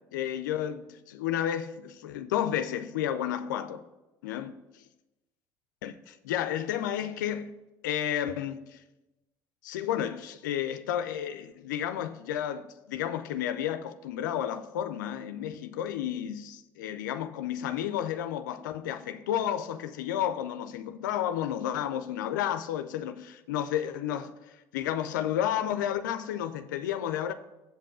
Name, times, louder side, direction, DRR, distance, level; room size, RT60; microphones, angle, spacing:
voice 1, 0.1-3.8 4.2-4.5 5.8-7.5 7.8-8.8 9.6-27.3, left 10 dB, 90° left, 0.4 m, -32 dB
7.8 x 5.2 x 6.5 m
hypercardioid pair, 65°, 10 cm